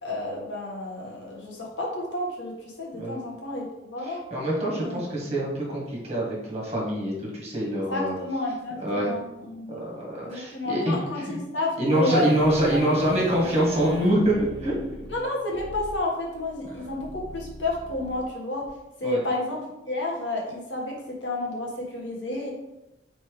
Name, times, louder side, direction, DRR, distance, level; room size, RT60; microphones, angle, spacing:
voice 1, 0.0-4.2 4.7-5.0 7.9-9.8 10.3-12.3 12.7-12.8 15.1-18.7 19.0-22.5, left 2 dB, 85° left, -2 dB, 1.7 m, -31 dB
voice 2, 4.3-8.2 8.8-9.1 9.7-11.4 11.8-14.8 19.0-19.2, right 1 dB, 35° right, -4 dB, 2.0 m, -25 dB
sound 1, 11.9-18.7, equal, 30° left, 1.5 m, -40 dB
4.7 x 4.2 x 4.9 m, 0.95 s
head